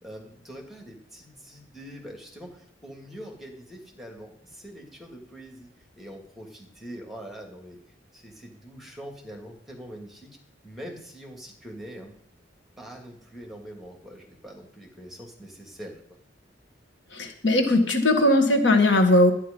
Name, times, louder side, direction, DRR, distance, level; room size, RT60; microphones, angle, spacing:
voice 1, 0.0-7.8 8.1-10.3 10.6-12.1 12.8-15.9, equal, ahead, 1 dB, 2.5 m, -43 dB
voice 2, 17.1-19.3, left 1 dB, 75° left, 5 dB, 1.8 m, -19 dB
11.5 x 10.0 x 5.4 m, 0.66 s
head